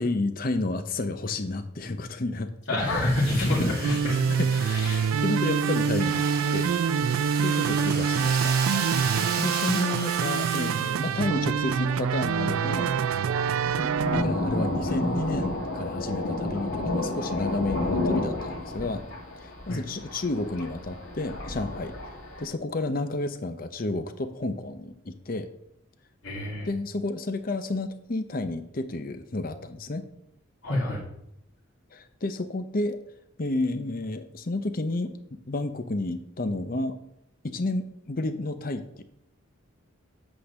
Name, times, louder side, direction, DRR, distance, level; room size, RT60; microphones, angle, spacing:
voice 1, 0.0-2.8 3.4-3.5 3.8-4.5 4.8-6.2 6.5-6.7 7.4-8.5 9.4-12.9 14.1-19.0 19.4-21.9 22.4-25.5 26.7-30.1 31.9-33.0 33.4-37.0 37.4-39.0, left 2 dB, 45° left, 9 dB, 0.7 m, -31 dB
voice 2, 2.7-4.0 4.5-5.0 19.7-19.8 26.2-26.7 30.6-31.0, left 1 dB, 70° left, -8 dB, 2.3 m, -27 dB
Domestic sounds home sounds, 2.9-11.2, right 5 dB, 45° right, 1.0 m, -35 dB
sound 1, 3.8-14.2, right 6 dB, 85° right, 0.3 m, -25 dB
Thunder, 11.2-22.5, left 2 dB, 85° left, 2.3 m, -32 dB
8.6 x 3.9 x 6.5 m, 0.77 s
head